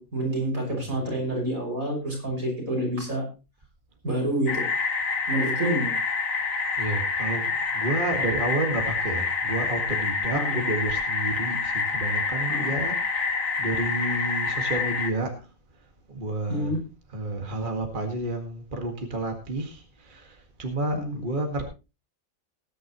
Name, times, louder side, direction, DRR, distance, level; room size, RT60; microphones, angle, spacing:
voice 1, 0.0-3.2 4.0-4.6 5.3-5.9 10.3-10.6 12.5-12.7 16.5-16.8 20.9-21.2, right 1 dB, 85° right, 0 dB, 6.2 m, -28 dB
voice 2, 0.7-1.1 6.8-15.5 16.1-16.7 17.1-21.6, right 2 dB, 35° right, 3 dB, 2.0 m, -31 dB
sound 1, 4.5-15.1, left 4 dB, 70° left, 2.0 m, -27 dB
19.0 x 10.0 x 3.0 m, 0.29 s
omnidirectional pair, 1.4 m